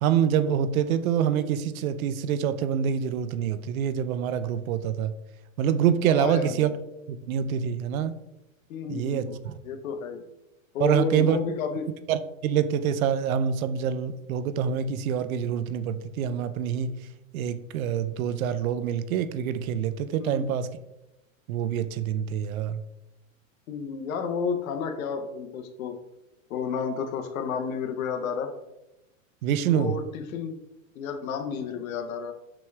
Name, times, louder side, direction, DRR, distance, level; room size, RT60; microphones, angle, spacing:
voice 1, 0.0-5.1 5.6-6.7 7.1-8.2 8.9-9.6 10.8-11.4 12.1-17.0 17.3-20.7 21.5-22.8 29.4-30.0, right 8 dB, 85° right, 13 dB, 0.5 m, -26 dB
voice 2, 6.1-6.7 8.7-9.4 9.6-10.2 10.7-11.9 20.2-20.4 23.7-26.0 26.5-28.5 29.7-30.6 30.9-32.3, left 5 dB, 80° left, 6 dB, 0.8 m, -31 dB
6.0 x 3.2 x 2.2 m, 0.94 s
supercardioid pair, 145°, 41 cm